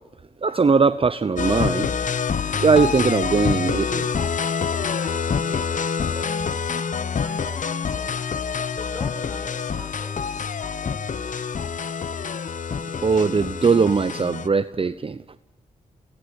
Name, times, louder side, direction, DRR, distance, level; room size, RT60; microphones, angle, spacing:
voice 1, 0.4-1.9 2.6-4.1 13.0-15.2, right 5 dB, 35° right, 13 dB, 0.8 m, -20 dB
sound 1, 1.4-14.5, left 6 dB, 50° left, 0.9 m, -26 dB
sound 2, 2.5-9.3 9.6-10.4, right 5 dB, 85° right, 3.1 m, -51 dB
voice 2, 4.4-11.5, equal, 5° left, 9 dB, 4.2 m, -44 dB
Wind instrument woodwind instrument, 6.1-7.7 8.1-11.5, left 9 dB, 90° left, 2.1 m, -50 dB
22.5 x 19.0 x 8.1 m, 1.1 s
supercardioid pair, 40°, 16 cm